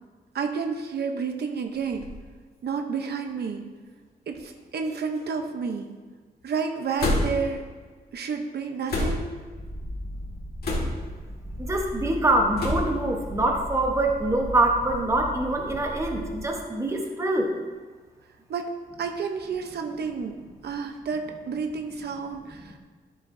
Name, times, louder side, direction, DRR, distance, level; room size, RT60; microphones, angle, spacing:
voice 1, 0.3-2.1 2.6-3.7 4.3-5.9 6.4-7.7 8.1-9.3 18.5-18.7 19.0-22.8, right 5 dB, 80° right, 5 dB, 0.8 m, -30 dB
sound 1, 1.8-2.2 3.0-3.1 4.3-4.6 4.8-5.4 7.0-7.6 8.9-9.4 10.6-11.2 12.6-13.0, left 2 dB, 70° left, 1.8 m, -28 dB
Purr, 9.5-16.5, equal, 15° left, 1.7 m, -37 dB
voice 2, 11.6-17.5, right 2 dB, 20° right, 1 dB, 1.0 m, -24 dB
12.5 x 7.9 x 2.7 m, 1.4 s
wide cardioid pair, 170°, 17 cm